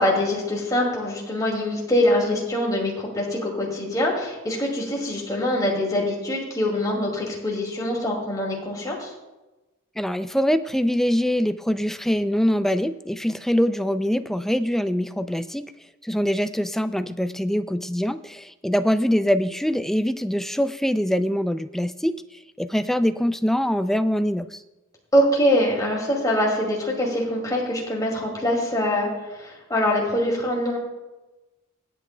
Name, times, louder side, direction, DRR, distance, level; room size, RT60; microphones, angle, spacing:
voice 1, 0.0-9.1 25.1-29.1 29.4-30.8, left 1 dB, 20° left, -2 dB, 2.4 m, -24 dB
voice 2, 10.0-15.7 16.0-22.2 22.6-24.6, equal, ahead, 11 dB, 0.3 m, -23 dB
24.0 x 8.4 x 2.2 m, 1.1 s
head